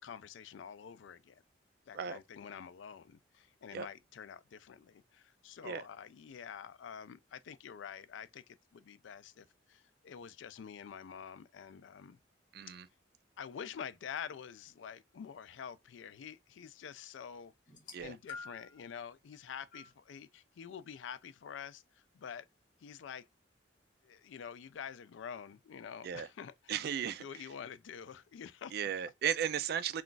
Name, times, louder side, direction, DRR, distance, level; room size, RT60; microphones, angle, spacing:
voice 1, 0.0-1.4 1.9-12.2 12.7-12.8 13.4-17.5 18.0-22.5 22.8-23.3 24.0-26.8 27.2-28.8, left 7 dB, 80° left, 0.3 m, -47 dB
voice 2, 12.5-12.9 17.9-18.1 26.0-26.3 26.7-27.2 28.7-30.0, right 8 dB, 55° right, 0.3 m, -35 dB
sound 1, 17.7-18.8 19.7-19.9 20.9-21.0, left 4 dB, 45° left, 0.8 m, -48 dB
2.4 x 2.3 x 3.8 m
head